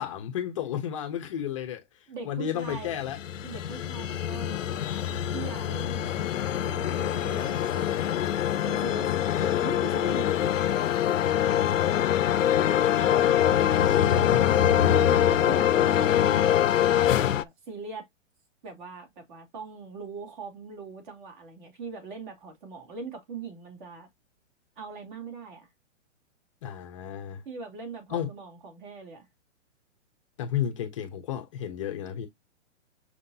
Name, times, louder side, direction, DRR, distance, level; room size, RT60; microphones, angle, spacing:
voice 1, 0.0-3.2 13.1-14.8 26.6-27.4 28.1-28.3 30.4-32.3, left 9 dB, 25° left, 0.8 m, -33 dB
voice 2, 2.1-3.1 3.4-5.1 5.3-9.1 9.4-10.4 11.5-11.7 15.1-18.1 18.6-24.1 24.8-25.7 27.4-29.3, right 4 dB, 40° right, 3.0 m, -41 dB
sound 1, 2.7-17.4, left 10 dB, 85° left, 0.7 m, -24 dB
6.4 x 5.7 x 2.7 m
hypercardioid pair, 170°, 37 cm